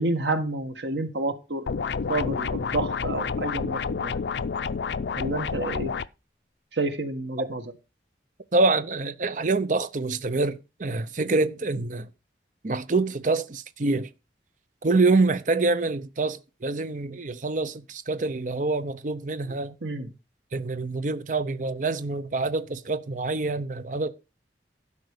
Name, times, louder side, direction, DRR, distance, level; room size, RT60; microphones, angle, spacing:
voice 1, 0.0-1.6 2.1-4.2 5.1-5.9 6.7-7.6 19.8-20.1, right 2 dB, 80° right, 1.7 m, -29 dB
sound 1, 1.7-6.1, left 5 dB, 75° left, 0.5 m, -29 dB
voice 2, 8.5-12.1 12.6-14.1 14.8-19.8 20.5-24.1, right 3 dB, 45° right, 0.7 m, -26 dB
12.0 x 5.3 x 6.7 m
head